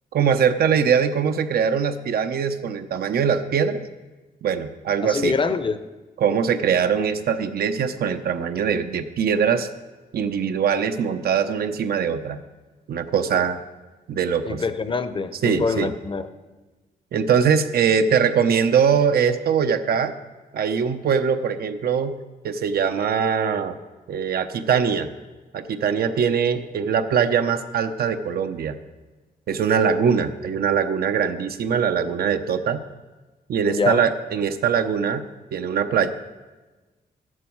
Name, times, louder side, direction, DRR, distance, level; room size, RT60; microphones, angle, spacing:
voice 1, 0.1-3.8 4.4-5.3 6.2-9.7 10.1-12.4 12.9-13.6 14.1-14.6 15.4-15.9 17.1-20.1 20.5-22.2 22.4-23.8 24.1-25.1 25.5-28.8 29.5-32.8 33.5-35.2 35.5-36.1, right 7 dB, 80° right, 9 dB, 0.8 m, -22 dB
voice 2, 5.0-5.8 14.4-16.3 33.7-34.0, left 4 dB, 35° left, 11 dB, 0.7 m, -25 dB
13.5 x 11.0 x 4.7 m, 1.2 s
wide cardioid pair, 135°, 16 cm